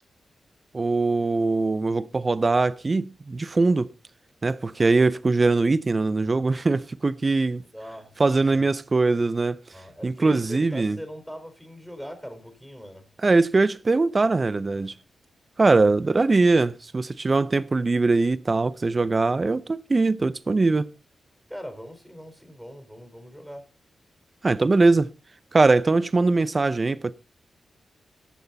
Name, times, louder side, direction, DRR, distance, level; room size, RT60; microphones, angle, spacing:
voice 1, 0.7-3.9 4.4-7.6 8.2-9.6 10.0-11.0 13.2-14.9 15.6-20.9 24.4-25.1 25.5-27.1, right 3 dB, 35° right, 0.8 m, -21 dB
voice 2, 7.7-8.7 9.7-13.0 16.0-16.2 21.5-23.6, equal, ahead, 4.4 m, -41 dB
16.5 x 6.7 x 4.1 m
cardioid pair, 65°, 0 cm